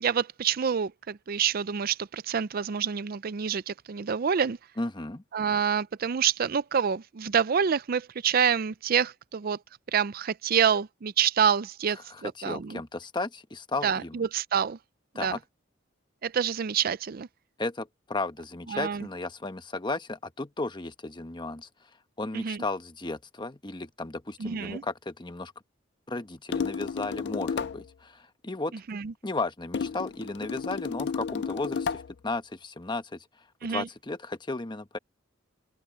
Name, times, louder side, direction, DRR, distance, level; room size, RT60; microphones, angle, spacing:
voice 1, 0.0-4.6 5.3-9.6 9.9-12.8 13.8-14.8 15.2-15.4 16.2-17.3 18.7-19.1 22.3-22.6 24.4-24.8 28.9-29.1 33.6-33.9, right 7 dB, 50° right, 0.4 m, -27 dB
voice 2, 4.8-5.2 12.1-14.2 15.1-15.4 17.6-21.7 22.2-25.5 26.1-28.7 29.2-33.3 33.6-35.0, left 2 dB, 25° left, 1.1 m, -34 dB
sound 1, 26.5-27.9 29.7-32.1, left 5 dB, 60° left, 0.4 m, -32 dB
open air
head